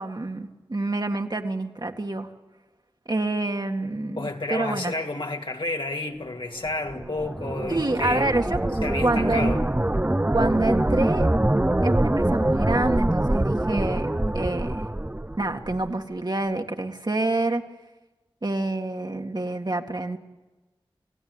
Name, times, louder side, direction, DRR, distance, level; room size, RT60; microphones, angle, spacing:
voice 1, 0.0-2.3 3.1-4.9 7.7-8.6 9.0-9.5 10.3-11.3 11.8-14.1 14.3-14.9 15.4-17.6 18.4-20.2, right 2 dB, 45° right, 2.0 m, -27 dB
voice 2, 4.2-8.6 8.8-9.7, left 2 dB, 60° left, 2.5 m, -31 dB
sound 1, 6.7-15.9, right 1 dB, 20° right, 0.7 m, -24 dB
29.5 x 16.5 x 9.6 m
wide cardioid pair, 40°, 10 cm